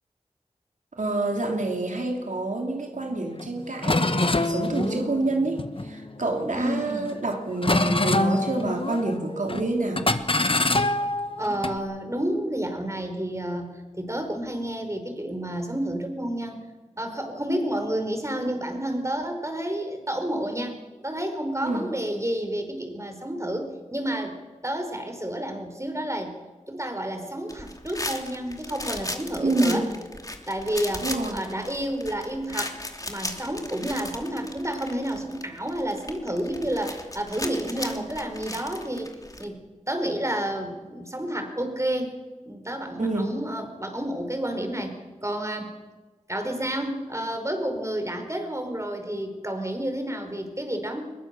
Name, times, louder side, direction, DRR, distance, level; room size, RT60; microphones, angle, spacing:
voice 1, 0.9-10.1 21.6-21.8 29.4-29.9 31.0-31.4 43.0-43.3, right 2 dB, 90° right, 2 dB, 3.1 m, -27 dB
sound 1, 3.4-3.5 3.8-6.3 6.8-7.2 7.6-9.2 9.5-9.7 10.0-11.8, left 2 dB, 45° left, 1.4 m, -25 dB
voice 2, 6.4-7.1 11.4-13.7 14.0-16.6 17.0-24.4 24.6-26.3 26.7-29.9 30.5-32.8 33.1-39.6 39.9-42.1 42.5-45.7 46.3-51.1, right 1 dB, 25° right, 5 dB, 4.9 m, -30 dB
sound 2, 27.5-39.4, left 1 dB, 30° left, 2.9 m, -37 dB
22.0 x 21.5 x 7.0 m, 1.3 s
wide cardioid pair, 40°, 13 cm